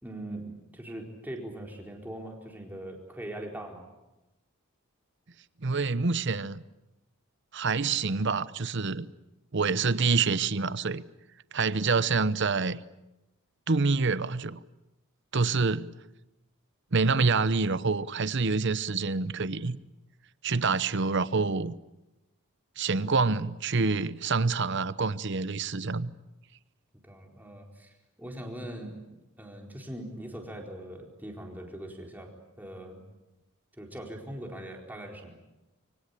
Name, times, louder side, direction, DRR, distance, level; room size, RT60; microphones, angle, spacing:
voice 1, 0.0-3.9 27.0-29.0 29.4-32.3 32.6-33.0 33.8-35.3, right 1 dB, 10° right, 4.3 m, -41 dB
voice 2, 5.6-6.6 7.5-9.1 9.5-11.0 11.5-12.8 13.7-14.6 15.3-15.9 16.9-19.8 20.4-21.7 22.8-26.1, right 4 dB, 55° right, 0.9 m, -27 dB
26.0 x 24.0 x 8.4 m
head